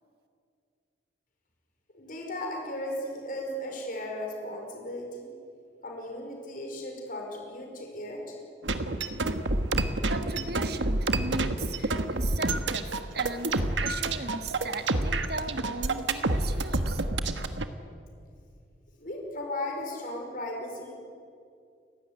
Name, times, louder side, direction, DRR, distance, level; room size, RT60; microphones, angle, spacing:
voice 1, 1.9-5.3 5.8-8.4 19.0-20.9, left 1 dB, 50° left, 1 dB, 5.1 m, -36 dB
sound 1, 8.6-17.6, right 2 dB, 80° right, 1.5 m, -28 dB
voice 2, 10.1-17.0, right 3 dB, 60° right, 8 dB, 1.6 m, -38 dB
30.0 x 16.5 x 9.6 m, 2.4 s
head